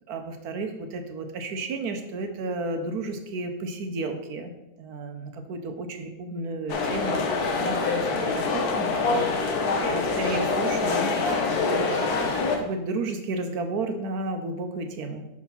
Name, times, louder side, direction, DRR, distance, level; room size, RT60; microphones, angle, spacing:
voice 1, 0.1-4.5 4.8-7.3 7.6-12.2 12.6-15.2, right 2 dB, 60° right, 5 dB, 1.2 m, -33 dB
sound 1, 6.7-12.6, left 4 dB, 60° left, 1.3 m, -25 dB
5.1 x 5.0 x 5.4 m, 0.93 s
omnidirectional pair, 2.0 m